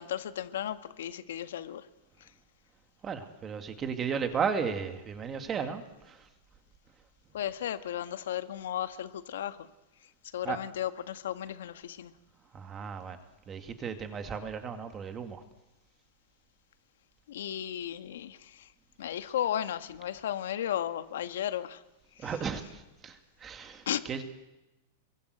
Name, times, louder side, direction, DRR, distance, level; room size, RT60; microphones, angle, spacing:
voice 1, 0.0-1.9 7.3-9.6 10.3-12.1 17.3-18.7 19.0-21.8 22.2-22.4 23.9-24.1, left 10 dB, 80° left, 9 dB, 1.8 m, -34 dB
voice 2, 3.0-5.8 10.4-10.6 12.5-13.2 13.5-15.4 22.2-23.2 23.4-24.2, right 6 dB, 15° right, 7 dB, 2.0 m, -34 dB
29.5 x 22.5 x 8.2 m, 1.0 s
supercardioid pair, 175°, 0 cm